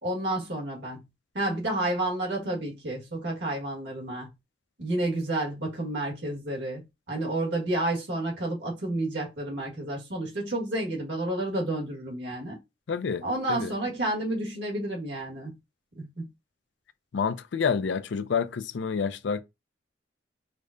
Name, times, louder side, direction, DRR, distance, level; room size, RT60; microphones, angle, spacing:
voice 1, 0.0-1.1 1.3-4.3 4.8-12.6 13.2-15.5 15.9-16.3, right 1 dB, 75° right, 1.6 m, -30 dB
voice 2, 12.9-13.2 13.5-13.7 17.1-19.4, left 6 dB, 80° left, 0.4 m, -28 dB
5.0 x 2.1 x 2.5 m
head